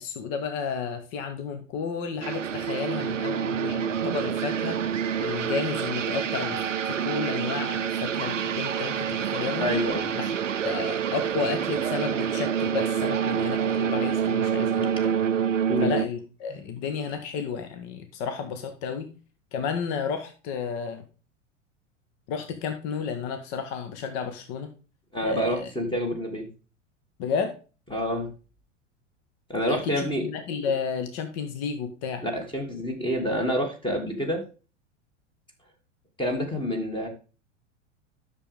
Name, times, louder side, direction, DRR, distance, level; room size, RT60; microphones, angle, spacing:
voice 1, 0.0-9.7 10.1-10.3 10.6-15.1 15.8-19.1 19.5-21.0 22.3-24.7 25.2-25.7 27.2-27.5 29.7-32.2, left 6 dB, 45° left, 7 dB, 1.5 m, -32 dB
sound 1, 2.2-16.1, right 8 dB, 90° right, 0.5 m, -27 dB
voice 2, 9.6-10.1 14.8-14.9 15.7-15.9 16.5-16.6 25.1-26.5 27.9-28.3 29.5-30.3 32.2-34.4 36.2-37.1, equal, 15° left, 3 dB, 2.9 m, -27 dB
10.5 x 6.8 x 3.6 m, 0.34 s
figure-of-eight pair, 90°, 36 cm